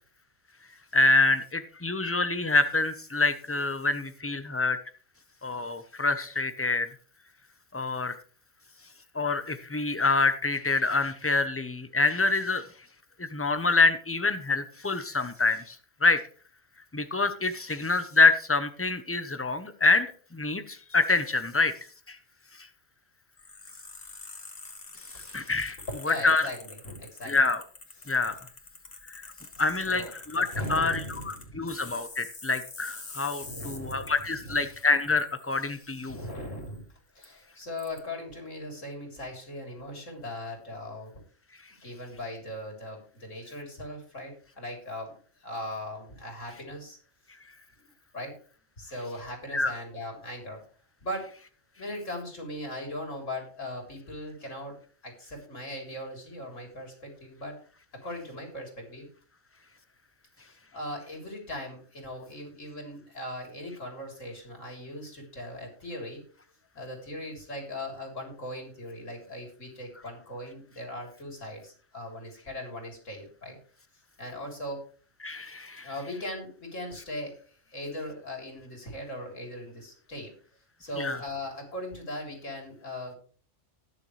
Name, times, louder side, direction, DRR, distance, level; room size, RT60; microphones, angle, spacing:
voice 1, 0.9-4.8 5.4-6.9 7.7-8.1 9.1-12.6 13.2-15.8 16.0-16.2 16.9-20.1 20.3-21.7 22.1-22.2 25.2-25.8 26.0-26.5 27.2-27.6 28.1-28.4 29.1-29.2 29.6-36.2 49.5-49.7 75.2-75.9 81.0-81.2, left 3 dB, 15° left, 10 dB, 0.8 m, -26 dB
sound 1, 23.4-36.8 37.2-37.3 37.8-38.0, left 3 dB, 45° left, 1.9 m, -47 dB
voice 2, 26.0-27.4 28.0-28.1 29.6-31.7 33.4-34.6 36.1-36.9 37.2-41.1 41.8-47.0 47.8-48.4 48.8-50.6 51.0-51.3 51.8-54.8 55.0-57.5 58.0-59.1 60.4-66.2 66.7-73.6 74.2-74.8 75.8-77.4 77.7-80.3 80.8-83.2, left 1 dB, 85° left, 1 dB, 4.1 m, -39 dB
19.5 x 6.9 x 3.3 m, 0.42 s
omnidirectional pair, 1.3 m